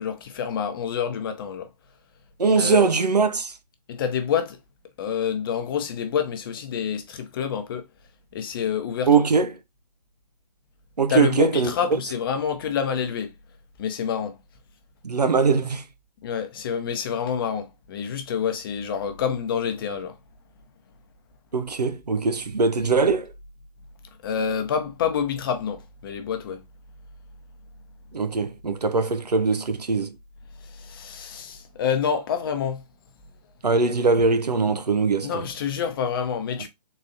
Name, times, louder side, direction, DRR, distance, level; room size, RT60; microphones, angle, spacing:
voice 1, 0.0-1.7 2.6-2.9 3.9-4.6 5.0-7.8 8.3-9.1 11.1-13.3 13.8-14.4 16.2-20.1 22.8-22.9 24.2-26.6 30.6-32.8 35.2-36.7, left 7 dB, 35° left, 0.8 m, -27 dB
voice 2, 2.4-3.5 9.1-9.5 11.0-12.0 15.0-15.8 21.5-23.3 28.1-30.1 33.6-35.4, right 4 dB, 80° right, 0.7 m, -21 dB
4.0 x 2.7 x 3.9 m
figure-of-eight pair, 140°, 20 cm